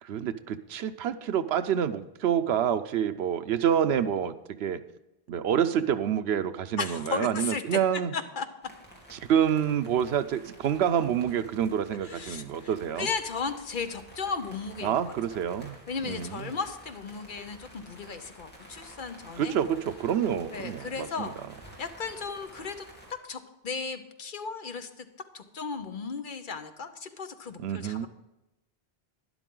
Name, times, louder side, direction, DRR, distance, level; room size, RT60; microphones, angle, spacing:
voice 1, 0.0-4.8 5.3-8.1 9.1-13.1 14.8-15.8 16.0-16.5 19.4-21.3 27.6-28.1, right 9 dB, 90° right, 12 dB, 0.9 m, -27 dB
voice 2, 6.8-7.8 8.1-8.5 12.1-12.7 13.0-15.1 15.9-19.8 20.5-21.3 21.8-25.1 25.3-28.1, left 5 dB, 55° left, 8 dB, 1.0 m, -35 dB
sound 1, 8.6-23.1, right 1 dB, 10° left, 2.6 m, -51 dB
12.0 x 11.0 x 3.8 m, 0.95 s
omnidirectional pair, 1.0 m